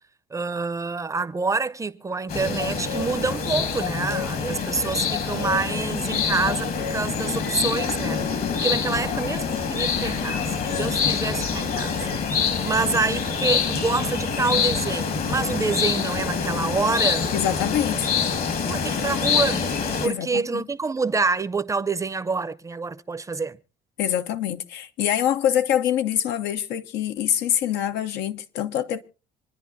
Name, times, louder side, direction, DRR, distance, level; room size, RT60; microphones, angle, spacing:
voice 1, 0.3-12.1 12.6-17.3 18.7-23.6, right 4 dB, 20° right, 0.6 m, -27 dB
sound 1, 2.3-20.1, left 6 dB, 60° left, 1.7 m, -26 dB
voice 2, 17.3-18.1 20.0-20.6 24.0-29.0, left 10 dB, 85° left, 0.9 m, -25 dB
26.5 x 9.9 x 2.6 m
cardioid pair, 110°, 17 cm